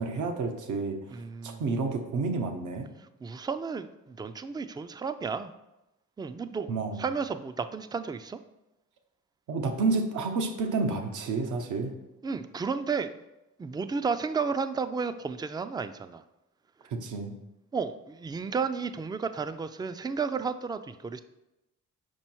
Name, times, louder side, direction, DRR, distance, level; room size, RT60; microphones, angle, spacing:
voice 1, 0.0-2.9 6.7-7.1 9.5-11.9 16.9-17.4, right 3 dB, 75° right, 5 dB, 0.9 m, -30 dB
voice 2, 1.1-1.6 3.2-5.5 6.2-6.7 7.0-8.4 12.2-13.2 13.6-16.2 17.7-21.2, right 5 dB, 15° right, 11 dB, 0.3 m, -32 dB
5.4 x 4.5 x 4.5 m, 0.94 s
cardioid pair, 70°, 31 cm